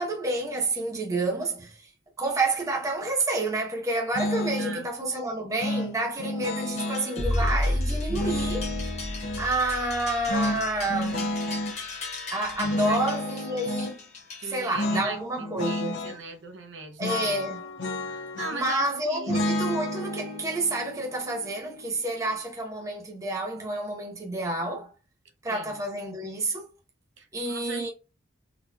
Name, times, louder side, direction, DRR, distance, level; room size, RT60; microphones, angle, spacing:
voice 1, 0.0-1.9 2.2-8.6 9.4-11.3 12.3-14.0 14.4-16.1 17.0-17.7 18.5-24.9 25.4-26.7 27.3-27.9, right 2 dB, 15° right, 0.7 m, -29 dB
sound 1, 4.1-4.8 5.6-7.1 8.1-9.5 10.3-11.8 12.6-13.9 14.7-15.1 15.4-16.2 17.0-18.8 19.3-22.3, left 1 dB, 65° left, 0.7 m, -31 dB
voice 2, 4.6-4.9 12.9-13.0 14.4-15.2 15.6-17.5 18.1-19.4 25.5-25.8 27.2-27.9, right 4 dB, 70° right, 0.8 m, -39 dB
sound 2, 6.8-14.9, left 4 dB, 35° left, 1.1 m, -40 dB
sound 3, 7.2-11.2, left 1 dB, 40° right, 1.5 m, -30 dB
3.9 x 2.9 x 2.3 m
head